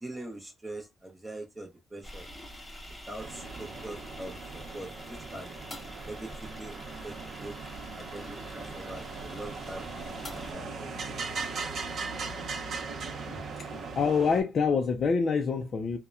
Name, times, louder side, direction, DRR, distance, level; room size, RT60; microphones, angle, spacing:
voice 1, 0.0-2.3 3.1-5.5 6.0-6.8 7.0-9.9 10.3-10.9 11.5-11.8 13.3-13.4, right 1 dB, 15° right, 0.6 m, -43 dB
sound 1, 2.0-10.5, equal, 20° left, 1.0 m, -45 dB
sound 2, 3.2-14.4, right 4 dB, 65° right, 0.7 m, -39 dB
voice 2, 13.3-16.0, left 5 dB, 50° left, 0.4 m, -27 dB
2.8 x 2.1 x 2.3 m
cardioid pair, 90°, 0 cm